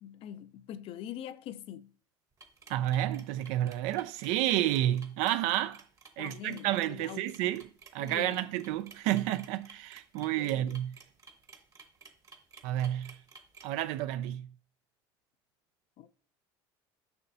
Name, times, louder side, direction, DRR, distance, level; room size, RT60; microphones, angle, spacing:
voice 1, 0.0-1.9 6.2-7.5 8.0-8.4 10.4-10.8 16.0-16.1, left 11 dB, 50° left, 0.4 m, -44 dB
sound 1, 2.4-13.6, right 4 dB, 30° right, 0.9 m, -54 dB
voice 2, 2.7-5.8 6.2-7.7 7.9-11.0 12.6-13.1 13.6-14.5, right 13 dB, 70° right, 0.4 m, -30 dB
6.9 x 5.8 x 2.7 m
supercardioid pair, 110°, 12 cm